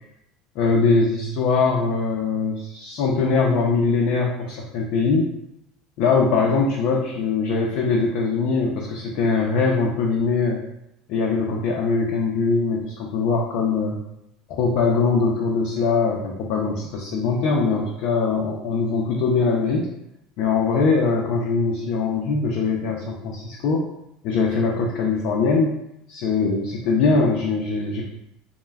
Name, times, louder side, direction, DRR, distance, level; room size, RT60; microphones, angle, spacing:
voice 1, 0.6-5.3 6.0-10.6 11.1-14.0 14.5-19.9 20.4-23.9 24.2-25.8 26.1-28.1, left 4 dB, 60° left, -2 dB, 0.4 m, -22 dB
2.2 x 2.1 x 3.3 m, 0.81 s
cardioid pair, 140°, 0 cm